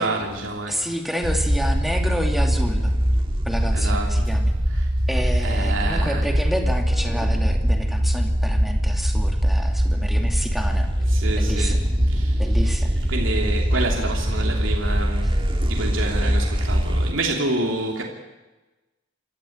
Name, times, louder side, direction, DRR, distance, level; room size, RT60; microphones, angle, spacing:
voice 1, 0.0-0.9 3.7-4.3 4.8-4.9 5.4-6.2 11.1-12.4 13.1-18.0, right 2 dB, 80° right, 0 dB, 2.9 m, -28 dB
voice 2, 0.7-2.9 3.4-4.5 5.1-10.9 11.3-11.8 12.4-12.9, equal, ahead, 3 dB, 2.6 m, -29 dB
sound 1, 1.2-17.1, equal, 25° right, 1.8 m, -22 dB
27.5 x 13.0 x 8.7 m, 1.1 s
head